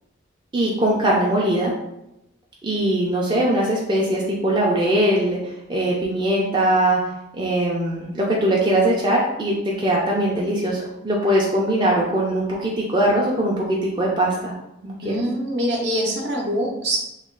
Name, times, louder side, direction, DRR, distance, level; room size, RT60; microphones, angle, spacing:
voice 1, 0.5-1.7 2.6-5.4 5.7-7.0 7.3-14.5 14.8-15.1, right 1 dB, 25° right, -4 dB, 0.4 m, -21 dB
voice 2, 15.0-17.0, equal, 60° right, -1 dB, 0.7 m, -24 dB
3.0 x 2.2 x 3.7 m, 0.87 s
head